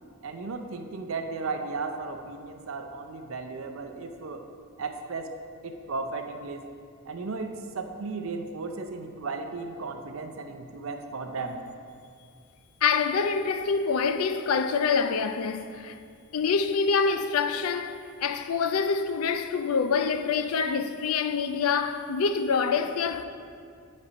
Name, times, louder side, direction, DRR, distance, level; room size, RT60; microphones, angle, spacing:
voice 1, 0.2-4.5 4.8-5.4 5.6-6.7 7.1-11.6, right 3 dB, 65° right, 0.5 m, -35 dB
voice 2, 12.8-16.0 16.3-23.2, left 5 dB, 75° left, 0.4 m, -26 dB
8.4 x 4.2 x 5.0 m
head